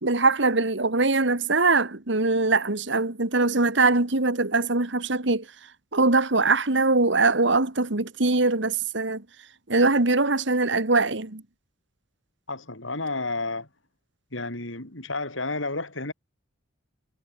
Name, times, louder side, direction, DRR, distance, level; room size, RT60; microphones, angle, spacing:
voice 1, 0.0-5.5 5.9-9.2 9.7-11.4, right 3 dB, 65° right, 1.9 m, -22 dB
voice 2, 12.5-13.7 14.3-16.1, left 3 dB, 75° left, 6.3 m, -31 dB
head